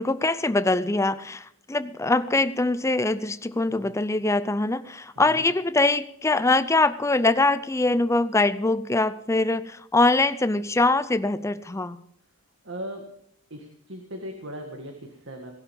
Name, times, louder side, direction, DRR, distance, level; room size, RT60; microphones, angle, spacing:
voice 1, 0.0-12.0, left 2 dB, 15° left, 15 dB, 0.5 m, -23 dB
voice 2, 3.7-4.0 5.1-5.5 12.6-13.1 13.5-15.5, equal, 65° right, 3 dB, 1.8 m, -39 dB
18.0 x 12.0 x 5.3 m, 0.71 s
head